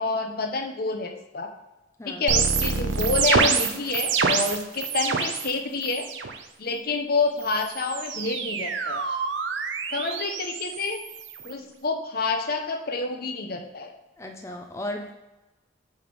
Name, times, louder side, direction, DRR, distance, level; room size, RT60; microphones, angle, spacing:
voice 1, 0.0-1.5 2.0-6.1 6.6-9.1 9.9-11.0 11.4-13.9, left 4 dB, 55° left, 5 dB, 0.8 m, -28 dB
sound 1, 2.3-5.5 5.8-6.4 7.4-11.5, right 5 dB, 90° right, 0.7 m, -26 dB
voice 2, 14.2-15.1, left 1 dB, 15° left, 3 dB, 0.6 m, -35 dB
7.5 x 3.4 x 5.3 m, 1.0 s
head